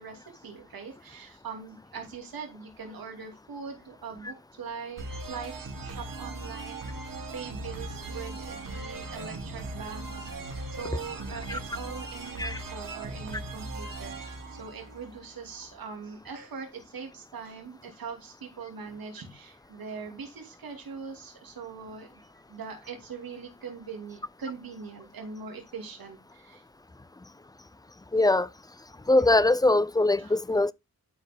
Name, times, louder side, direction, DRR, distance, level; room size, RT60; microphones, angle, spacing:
voice 1, 0.0-26.6 30.2-30.4, right 5 dB, 85° right, 2.7 m, -42 dB
sound 1, 5.0-15.6, right 2 dB, 70° right, 2.4 m, -39 dB
voice 2, 28.1-28.5 29.1-30.7, left 2 dB, 10° left, 0.5 m, -22 dB
12.5 x 4.6 x 3.6 m
cardioid pair, 65°, 35 cm